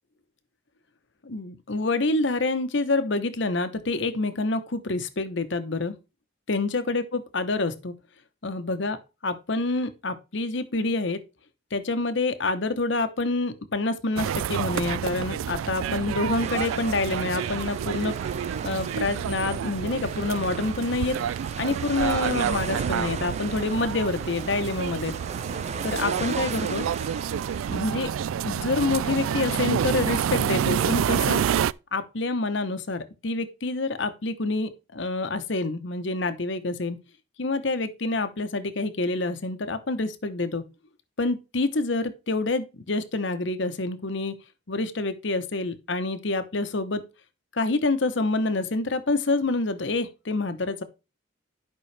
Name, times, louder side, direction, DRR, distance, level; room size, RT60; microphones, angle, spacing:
voice 1, 1.2-5.9 6.5-7.9 8.4-9.0 9.2-11.2 11.7-18.2 18.6-21.2 21.6-25.1 25.8-26.9 27.7-28.1 28.4-31.4 31.9-37.0 37.4-40.6 41.2-44.3 44.7-47.0 47.5-50.8, left 3 dB, 65° left, 0.9 m, -27 dB
sound 1, 14.2-31.7, right 8 dB, 90° right, 0.3 m, -28 dB
sound 2, 16.4-27.9, right 5 dB, 35° right, 0.6 m, -38 dB
11.5 x 5.5 x 3.3 m
head